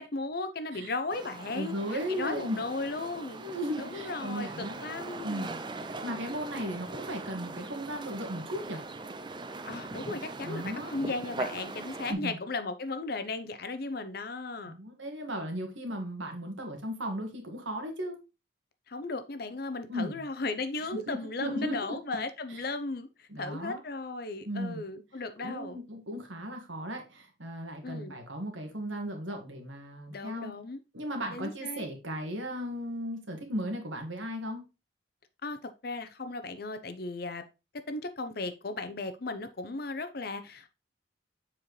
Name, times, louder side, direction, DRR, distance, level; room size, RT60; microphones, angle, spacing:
voice 1, 0.0-3.4 3.8-4.5 4.8-5.5 9.7-14.7 18.9-25.8 27.8-28.1 30.1-30.8 31.3-31.9 35.4-37.4 37.9-40.7, left 3 dB, 50° left, 0.7 m, -36 dB
sound 1, 1.1-12.1, right 3 dB, 25° right, 0.5 m, -40 dB
voice 2, 1.5-2.6 3.4-4.8 5.2-8.8 10.4-11.0 12.1-12.4 14.7-18.2 19.9-20.2 21.1-21.9 22.5-22.7 23.3-23.8 24.4-24.8 25.4-30.5 30.9-34.6, equal, 90° right, 1.7 m, -36 dB
7.4 x 4.4 x 3.2 m
head